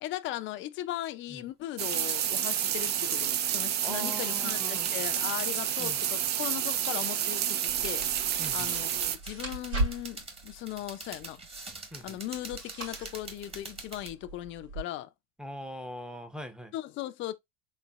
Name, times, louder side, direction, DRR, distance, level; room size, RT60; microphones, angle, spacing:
voice 1, 0.0-8.1 8.5-11.4 12.0-15.1 16.7-17.3, left 14 dB, 40° left, 0.5 m, -38 dB
sound 1, 1.8-9.2, right 10 dB, 35° right, 0.5 m, -30 dB
voice 2, 3.8-4.9 5.8-6.0 8.4-8.7 11.9-12.2 15.4-16.7, equal, 5° right, 0.7 m, -42 dB
sound 2, 4.8-14.1, right 3 dB, 20° right, 1.4 m, -46 dB
sound 3, 7.7-14.8, right 1 dB, 85° right, 3.1 m, -39 dB
4.1 x 3.7 x 2.3 m
hypercardioid pair, 95°, 30 cm